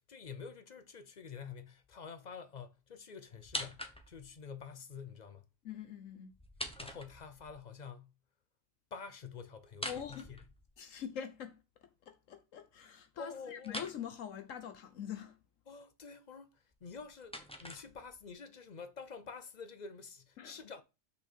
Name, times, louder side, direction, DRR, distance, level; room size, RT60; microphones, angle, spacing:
voice 1, 0.0-5.5 6.8-8.1 8.9-10.4 13.2-13.8 15.7-17.4 17.6-20.8, left 5 dB, 45° left, 0.6 m, -48 dB
sound 1, 3.4-4.4 6.3-7.6 9.7-11.0 13.6-14.0 16.7-18.3, equal, 5° left, 0.9 m, -44 dB
voice 2, 5.6-6.3 9.9-10.3 10.8-15.4 20.4-20.6, left 9 dB, 75° left, 1.1 m, -44 dB
6.4 x 5.3 x 4.3 m
omnidirectional pair, 1.4 m